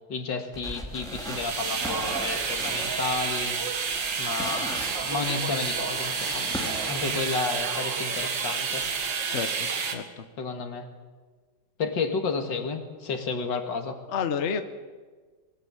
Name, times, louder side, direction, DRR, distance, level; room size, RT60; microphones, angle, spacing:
voice 1, 0.1-3.6 4.2-8.9 10.4-10.9 11.8-14.0, left 4 dB, 80° left, 6 dB, 2.6 m, -31 dB
sound 1, 0.5-7.3, equal, ahead, 2.7 m, -39 dB
sound 2, 1.0-10.0, right 5 dB, 85° right, 2.4 m, -30 dB
voice 2, 9.3-10.2 14.1-14.6, left 6 dB, 45° left, 9 dB, 1.3 m, -30 dB
23.0 x 16.0 x 8.8 m, 1.4 s
omnidirectional pair, 1.9 m